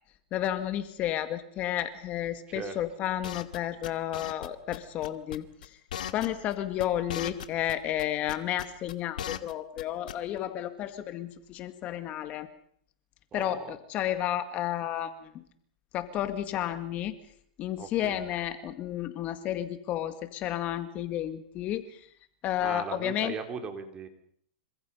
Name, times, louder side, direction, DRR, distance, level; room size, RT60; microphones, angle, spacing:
voice 1, 0.3-5.8 6.1-12.5 13.3-15.4 15.9-17.2 17.6-22.1 22.4-23.3, left 12 dB, 35° left, 10 dB, 2.0 m, -32 dB
sound 1, 3.2-3.6 3.8-4.5 4.7-4.8 5.0-5.7 5.9-6.5 6.8-7.7 8.0-9.5 9.8-9.9 10.1-10.4, left 10 dB, 75° left, 2.1 m, -37 dB
voice 2, 13.3-13.8 17.8-18.3 22.6-24.1, right 6 dB, 25° right, 6 dB, 4.0 m, -38 dB
27.5 x 25.5 x 5.6 m, 0.64 s
hypercardioid pair, 135°, 4 cm